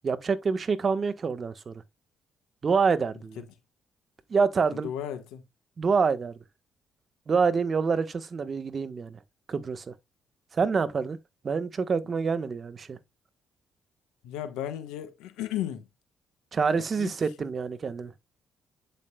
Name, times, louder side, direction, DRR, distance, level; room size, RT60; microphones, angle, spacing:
voice 1, 0.0-1.7 2.6-3.4 4.3-4.9 5.8-6.4 7.3-9.2 9.5-9.9 10.5-11.2 11.4-13.0 16.5-18.1, right 5 dB, 45° right, 1.3 m, -26 dB
voice 2, 4.7-5.4 14.2-15.9 16.8-17.1, left 11 dB, 90° left, 1.3 m, -35 dB
11.0 x 5.1 x 2.3 m
supercardioid pair, 65°, 0 cm